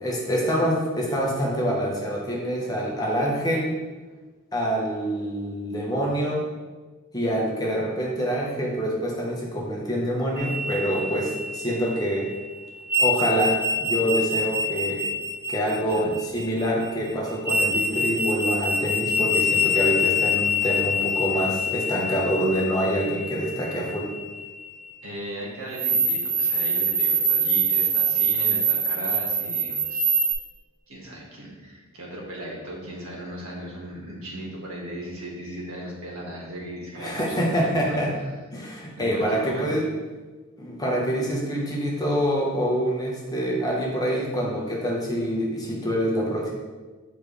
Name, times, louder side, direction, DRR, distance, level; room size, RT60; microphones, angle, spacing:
voice 1, 0.0-3.7 4.5-6.4 7.1-12.3 13.0-15.0 15.5-24.1 37.0-38.1 38.5-39.9 40.6-46.5, equal, 15° left, -3 dB, 1.1 m, -26 dB
sound 1, 10.4-12.2 12.9-16.8 17.4-24.8 25.7-30.3, right 1 dB, 15° right, 1.3 m, -25 dB
voice 2, 25.0-30.2 30.9-38.0 38.9-39.7, right 1 dB, 75° right, -4 dB, 1.8 m, -37 dB
7.3 x 5.0 x 3.3 m, 1.3 s
head